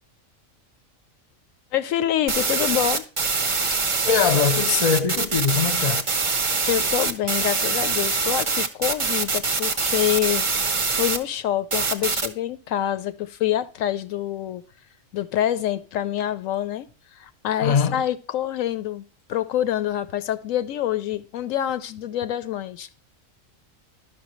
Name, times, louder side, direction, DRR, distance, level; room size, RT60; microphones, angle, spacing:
voice 1, 1.7-3.0 6.7-14.6 15.1-16.9 17.2-19.0 19.3-23.0, left 11 dB, 80° left, 1.0 m, -26 dB
sound 1, 2.3-11.2 11.7-12.3, right 4 dB, 35° right, 0.5 m, -24 dB
voice 2, 3.7-6.1 17.6-18.0, left 6 dB, 40° left, 0.6 m, -22 dB
11.5 x 5.7 x 3.0 m
omnidirectional pair, 1.4 m